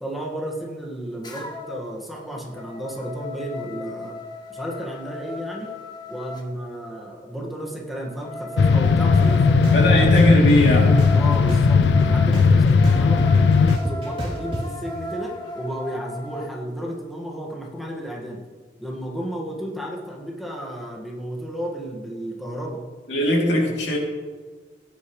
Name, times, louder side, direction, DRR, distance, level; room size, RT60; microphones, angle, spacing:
voice 1, 0.0-4.2 4.5-5.7 6.1-9.9 11.1-18.4 18.8-22.8, equal, ahead, -2 dB, 1.7 m, -33 dB
sound 1, 1.2-1.9 2.3-6.5 7.9-16.5, left 1 dB, 25° left, 1.2 m, -36 dB
sound 2, 8.6-13.8, left 5 dB, 70° left, 0.3 m, -17 dB
sound 3, 9.1-9.2 9.6-10.6 11.0-12.0 12.3-14.6, equal, 30° right, 3.0 m, -28 dB
voice 2, 9.7-11.0 23.1-24.0, left 1 dB, 85° left, -1 dB, 2.9 m, -19 dB
16.5 x 9.5 x 3.2 m, 1.5 s
head